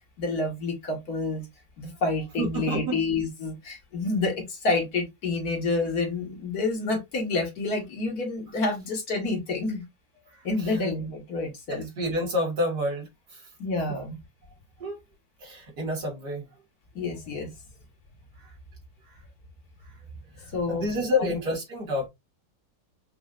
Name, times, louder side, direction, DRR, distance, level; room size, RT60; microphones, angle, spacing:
voice 1, 0.2-1.4 1.8-9.8 10.4-11.9 13.6-14.2 17.0-17.5 20.5-20.9 21.2-21.3, left 3 dB, 60° left, 1.8 m, -28 dB
voice 2, 2.4-3.0 10.6-10.7 11.7-13.4 14.8-15.0 15.4-16.5 18.4-18.5 20.4-22.1, left 1 dB, 65° right, 2.2 m, -29 dB
5.3 x 2.6 x 2.4 m
omnidirectional pair, 1.9 m